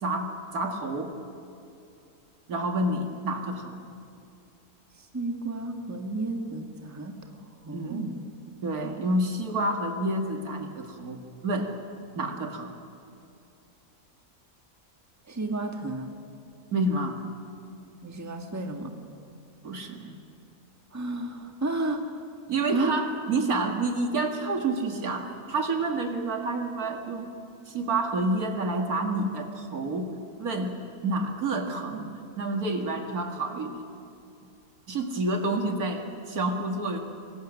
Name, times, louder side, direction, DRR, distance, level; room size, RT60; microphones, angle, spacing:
voice 1, 0.0-1.1 2.5-3.8 7.7-8.1 8.6-11.7 12.2-12.7 16.7-17.2 19.6-20.2 22.5-27.3 27.7-30.1 30.4-30.8 31.0-33.8 34.9-37.0, right 2 dB, 65° right, 4 dB, 2.3 m, -29 dB
voice 2, 5.0-7.2 7.6-8.1 15.3-16.1 18.0-18.9 20.9-22.0 22.7-23.0, right 2 dB, 10° right, 3 dB, 1.5 m, -32 dB
25.5 x 21.5 x 6.4 m, 2.6 s
omnidirectional pair, 1.7 m